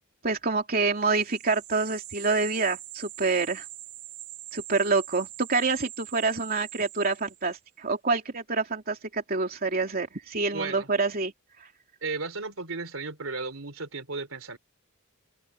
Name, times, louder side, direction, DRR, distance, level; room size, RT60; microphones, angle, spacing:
voice 1, 0.2-3.7 4.5-11.3, right 4 dB, 45° right, 3.0 m, -27 dB
sound 1, 1.0-7.6, right 15 dB, 90° right, 5.7 m, -43 dB
voice 2, 10.5-10.9 12.0-14.6, right 3 dB, 65° right, 3.7 m, -34 dB
head